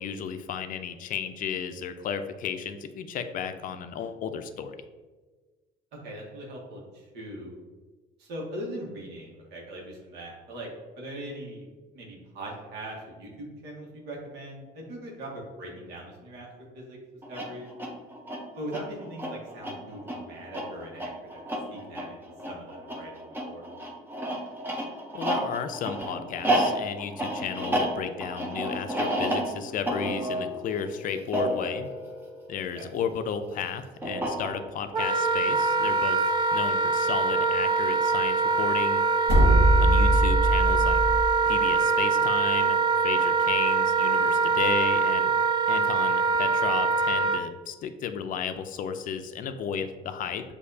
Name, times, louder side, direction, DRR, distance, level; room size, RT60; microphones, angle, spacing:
voice 1, 0.0-4.8 25.1-31.9 32.5-39.0 39.8-41.0 41.4-45.3 45.7-50.4, left 7 dB, 55° left, 9 dB, 0.4 m, -33 dB
voice 2, 5.9-7.5 8.2-10.7 11.0-11.7 11.9-16.5 16.7-17.0 17.3-17.7 18.6-21.4 21.7-23.7 32.7-32.9, right 1 dB, 85° right, -2 dB, 1.3 m, -40 dB
sound 1, 17.2-33.0 34.0-34.9, right 1 dB, 10° right, 0.7 m, -31 dB
Wind instrument woodwind instrument, 34.9-47.4, right 4 dB, 30° right, 0.4 m, -24 dB
sound 2, 39.3-41.3, right 1 dB, 70° right, 1.2 m, -21 dB
6.4 x 2.7 x 2.7 m, 1.3 s
cardioid pair, 110°, 17 cm